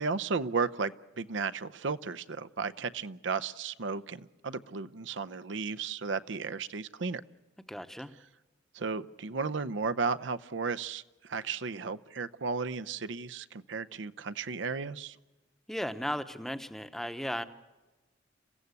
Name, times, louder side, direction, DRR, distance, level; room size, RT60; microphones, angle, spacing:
voice 1, 0.0-7.2 8.7-15.2, right 4 dB, 80° right, 12 dB, 0.7 m, -34 dB
voice 2, 7.7-8.1 15.7-17.4, equal, ahead, 10 dB, 0.8 m, -35 dB
28.5 x 15.5 x 8.2 m, 1.2 s
head